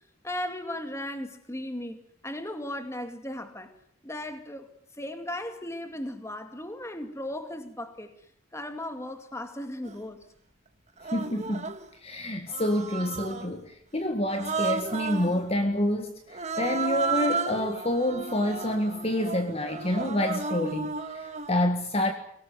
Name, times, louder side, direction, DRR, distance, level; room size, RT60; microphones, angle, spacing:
voice 1, 0.2-3.7 4.0-4.7 5.0-8.1 8.5-10.3, left 1 dB, 15° left, 2.3 m, -36 dB
Human voice, 9.8-10.0 11.0-11.9 12.5-13.6 14.3-15.4 16.3-21.6, right 4 dB, 30° right, 1.7 m, -33 dB
voice 2, 11.1-11.7 12.0-22.1, left 1 dB, 30° left, 1.8 m, -28 dB
24.0 x 18.0 x 9.6 m
head